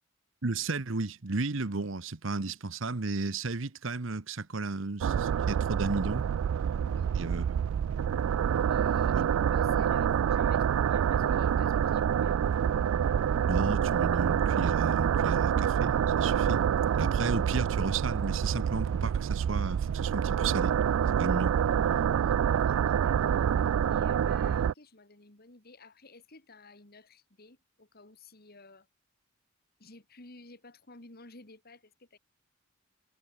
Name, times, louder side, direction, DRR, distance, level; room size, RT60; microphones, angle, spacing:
voice 1, 0.4-6.2 7.1-7.4 9.1-9.2 13.2-16.6 17.0-20.7 21.2-21.6, right 3 dB, 65° right, 1.1 m, -33 dB
sound 1, 5.0-24.7, right 8 dB, 85° right, 0.3 m, -27 dB
voice 2, 6.8-7.2 8.7-12.7 22.0-23.4 23.9-28.9 29.8-32.2, left 2 dB, 50° left, 2.6 m, -54 dB
head